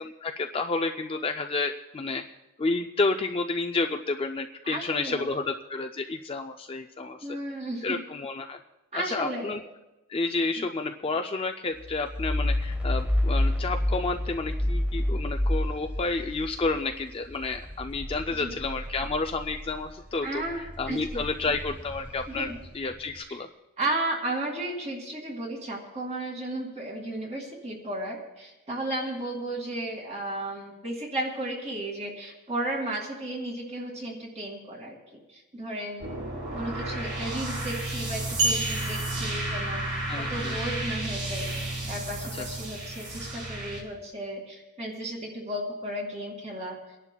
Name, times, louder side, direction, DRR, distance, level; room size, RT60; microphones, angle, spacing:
voice 1, 0.0-2.2 2.6-7.3 7.8-8.6 8.9-9.6 10.1-23.5 40.1-40.5 42.3-42.4, left 3 dB, 25° left, 5 dB, 0.4 m, -30 dB
voice 2, 4.6-5.3 7.2-8.0 8.9-9.5 10.5-10.7 18.4-18.5 20.2-21.0 22.3-22.6 23.3-23.4 23.8-35.0 35.3-36.2 36.5-39.8 40.1-46.8, right 1 dB, 30° right, 0 dB, 2.4 m, -34 dB
sound 1, 11.8-20.0 20.4-23.0, left 1 dB, 5° right, 0.9 m, -30 dB
sound 2, 36.0-43.8, right 1 dB, 60° right, 4.9 m, -32 dB
sound 3, 38.4-40.2, right 2 dB, 80° right, 4.4 m, -30 dB
29.0 x 11.0 x 2.3 m, 1.0 s
head